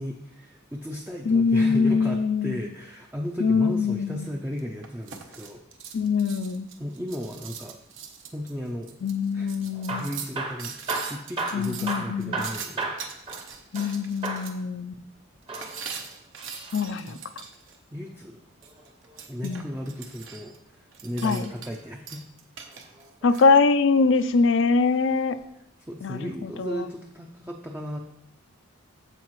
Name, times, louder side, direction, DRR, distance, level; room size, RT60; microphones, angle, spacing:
voice 1, 0.0-5.6 6.8-7.8 8.3-8.9 9.3-9.5 9.9-13.0 17.1-17.2 17.9-18.4 19.3-22.2 23.3-23.4 25.9-28.0, equal, 10° right, 1 dB, 0.5 m, -35 dB
voice 2, 1.3-2.6 3.4-4.3 5.9-6.7 9.0-10.1 11.5-12.5 13.7-14.9 16.7-17.2 19.4-19.6 21.2-21.5 23.2-25.4 26.0-26.9, left 4 dB, 60° left, 13 dB, 0.4 m, -23 dB
sound 1, 4.6-14.5 15.5-17.8 18.6-20.6 20.9-21.8 22.1-23.4, right 7 dB, 65° right, 0.9 m, -41 dB
Hammer / Drill, 9.7-14.0 14.2-14.5 15.4-16.8 18.5-19.8 21.5-21.9 22.7-23.5 24.2-24.4 24.7-24.8 25.4-25.5, right 3 dB, 25° right, 0.9 m, -34 dB
14.5 x 4.9 x 3.1 m, 0.79 s
head